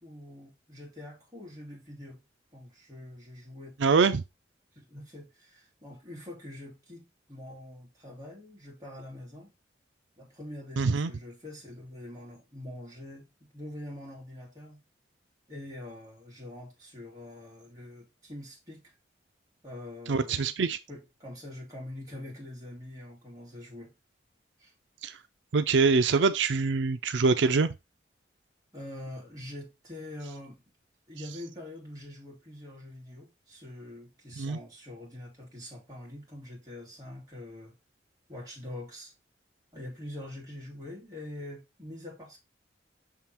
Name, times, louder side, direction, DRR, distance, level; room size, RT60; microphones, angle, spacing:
voice 1, 0.0-2.2 2.5-3.8 4.0-4.2 4.7-9.5 10.2-14.8 15.5-18.9 19.6-20.5 20.9-23.9 24.6-24.7 28.7-30.6 31.1-37.7 38.3-39.1 39.7-42.4, left 1 dB, 20° right, 2.5 m, -44 dB
voice 2, 3.8-4.2 10.8-11.1 20.1-20.8 25.0-25.2 25.5-27.7 34.4-34.6, right 4 dB, 85° right, 0.5 m, -24 dB
6.1 x 3.8 x 4.3 m
head